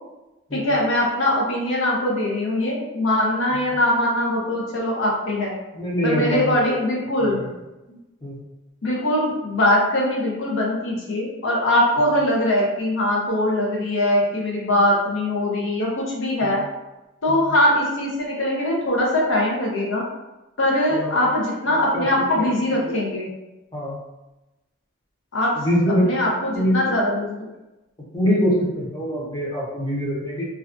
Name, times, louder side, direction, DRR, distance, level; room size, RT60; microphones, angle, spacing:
voice 1, 0.5-5.5 6.0-7.5 7.9-8.0 8.8-16.6 17.2-20.0 20.6-23.3 25.3-25.7 26.0-27.4, left 1 dB, 75° left, -3 dB, 0.6 m, -22 dB
voice 2, 5.7-6.7 7.2-7.3 8.2-8.4 16.4-16.5 17.3-17.4 20.9-21.2 21.9-22.4 23.7-24.0 25.6-26.2 26.5-26.8 28.1-30.5, equal, 20° left, -6 dB, 0.7 m, -23 dB
2.4 x 2.2 x 2.4 m, 1.0 s
head